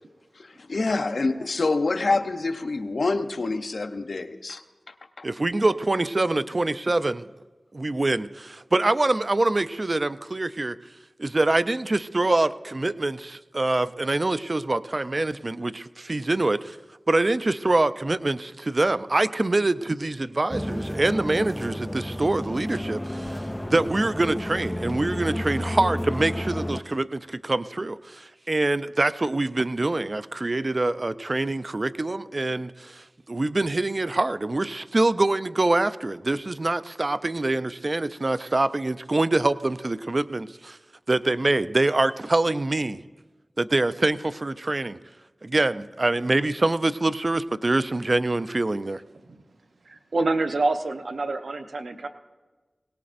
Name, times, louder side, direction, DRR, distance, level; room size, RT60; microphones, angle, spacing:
voice 1, 0.4-5.3, left 3 dB, 75° left, 8 dB, 0.8 m, -27 dB
voice 2, 5.2-7.3 7.7-10.8 11.2-16.8 17.1-40.8 41.1-43.0 43.6-45.0 45.4-49.0, right 2 dB, 50° right, 14 dB, 0.5 m, -25 dB
sound 1, 20.5-26.8, left 1 dB, 15° left, 0.4 m, -31 dB
voice 3, 49.9-52.1, right 2 dB, 85° right, 6 dB, 0.8 m, -27 dB
21.5 x 18.0 x 2.6 m, 1.3 s
cardioid pair, 40°, 0 cm